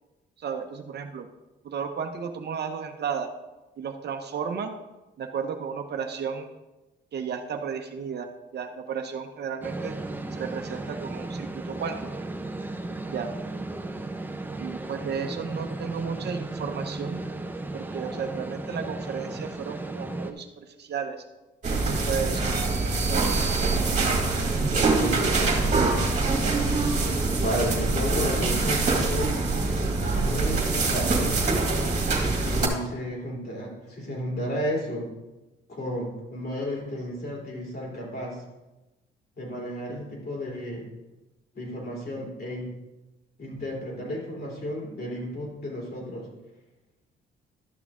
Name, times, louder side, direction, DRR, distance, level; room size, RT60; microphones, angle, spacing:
voice 1, 0.4-1.3 1.6-3.3 3.8-4.7 5.2-6.5 7.1-9.9 10.3-12.2 13.1-13.3 14.6-17.2 17.7-21.2 21.7-22.5 23.0-23.4, right 6 dB, 55° right, 6 dB, 0.9 m, -33 dB
sound 1, 9.6-20.3, right 2 dB, 10° right, 0.8 m, -35 dB
sound 2, 21.6-32.7, right 3 dB, 35° right, 2.1 m, -24 dB
voice 2, 24.7-26.5 27.4-29.4 30.0-32.0 32.3-35.1 35.7-38.4 39.4-40.9 41.5-42.7 43.4-46.3, equal, 55° left, -3 dB, 3.5 m, -33 dB
12.0 x 6.1 x 3.7 m, 1.1 s
cardioid pair, 90°, 20 cm